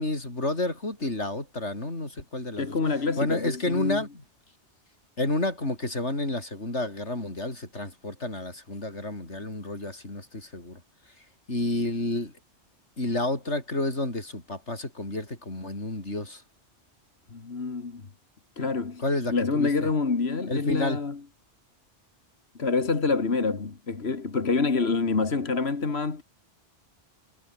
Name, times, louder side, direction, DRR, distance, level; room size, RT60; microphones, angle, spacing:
voice 1, 0.0-2.8 3.2-4.1 5.2-10.8 11.5-12.3 13.0-16.4 19.0-19.9 20.5-21.0, left 2 dB, 85° left, 5.9 m, -30 dB
voice 2, 2.6-4.0 17.3-18.0 18.6-19.0 19.3-21.2 22.6-26.2, left 4 dB, 65° left, 2.3 m, -27 dB
omnidirectional pair, 1.1 m